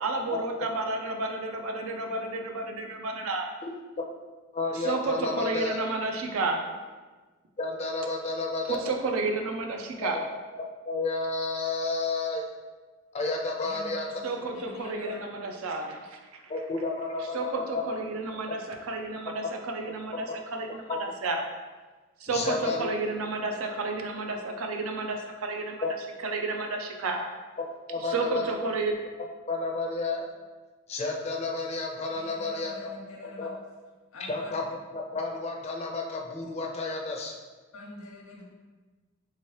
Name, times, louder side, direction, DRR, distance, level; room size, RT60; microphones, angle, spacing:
voice 1, 0.0-3.5 4.7-6.7 8.7-10.2 14.2-16.5 17.3-20.3 20.5-21.5 22.2-25.8 26.2-27.3 28.0-28.9, right 3 dB, 90° right, 3 dB, 0.5 m, -31 dB
voice 2, 4.5-5.8 7.6-8.8 10.0-10.2 10.8-12.4 13.1-14.2 16.5-18.0 20.9-21.0 22.3-22.9 25.8-25.9 27.6-28.5 29.5-30.3 30.9-32.7 33.4-33.5 34.3-34.6 34.9-37.4, left 3 dB, 30° left, 0 dB, 0.4 m, -31 dB
voice 3, 13.6-15.3 32.1-33.5 34.1-34.5 37.7-38.4, left 2 dB, 80° left, -4 dB, 0.7 m, -44 dB
3.5 x 2.8 x 3.1 m, 1.3 s
head